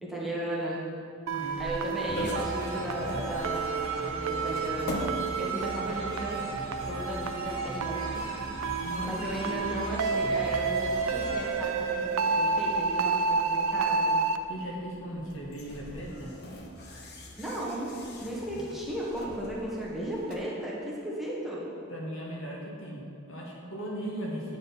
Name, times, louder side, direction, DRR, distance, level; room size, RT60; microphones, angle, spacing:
voice 1, 0.0-0.8 1.6-5.1 5.4-6.4 6.7-8.2 9.0-14.1 17.4-17.9 18.2-21.7, right 1 dB, ahead, -6 dB, 1.2 m, -35 dB
voice 2, 1.3-1.6 8.8-9.4 14.5-16.3 21.9-24.6, equal, 70° left, -3 dB, 1.4 m, -38 dB
sound 1, 1.3-20.4, left 1 dB, 50° left, 0.8 m, -43 dB
sound 2, 1.3-14.4, right 4 dB, 85° right, 0.4 m, -30 dB
sound 3, 2.1-12.7, left 1 dB, 85° left, 1.1 m, -40 dB
8.9 x 4.2 x 5.4 m, 2.5 s
head